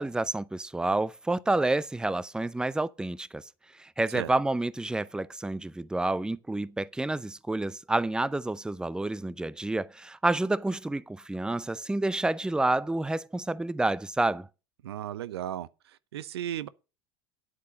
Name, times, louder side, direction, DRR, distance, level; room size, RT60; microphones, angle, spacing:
voice 1, 0.0-3.4 3.7-14.5, right 2 dB, 5° right, 0.6 m, -29 dB
voice 2, 14.8-16.7, right 11 dB, 85° right, 0.7 m, -35 dB
10.5 x 8.3 x 5.2 m
hypercardioid pair, 85°, 13 cm